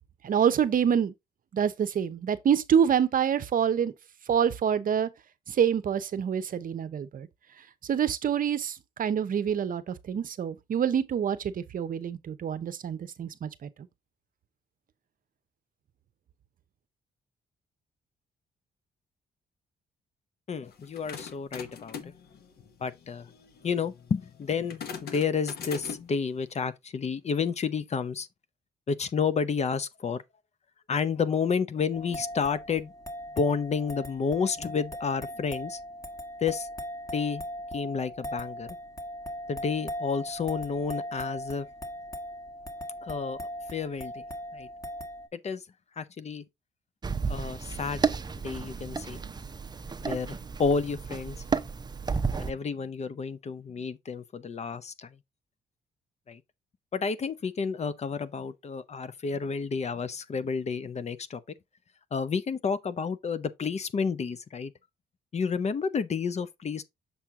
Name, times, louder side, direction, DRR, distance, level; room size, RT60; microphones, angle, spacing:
voice 1, 0.2-1.1 1.5-3.9 4.3-5.1 5.5-7.3 7.8-13.9, right 8 dB, 55° right, 0.8 m, -26 dB
voice 2, 20.5-22.1 22.8-23.3 23.6-28.3 28.9-30.2 30.9-32.9 33.4-35.8 36.4-36.7 37.1-37.5 37.7-38.8 39.5-41.7 43.0-44.2 44.5-44.7 45.3-45.6 46.0-46.4 47.3-48.0 48.4-49.2 50.0-51.4 52.4-55.1 56.3-56.4 56.9-61.4 62.1-64.7 65.3-66.8, left 5 dB, 40° left, 0.7 m, -30 dB
sound 1, 20.7-26.2, left 6 dB, 70° left, 1.2 m, -42 dB
sound 2, 31.9-45.3, equal, 20° left, 1.6 m, -39 dB
sound 3, 47.0-52.5, right 5 dB, 25° right, 0.7 m, -32 dB
7.0 x 4.4 x 3.6 m
cardioid pair, 85°, 17 cm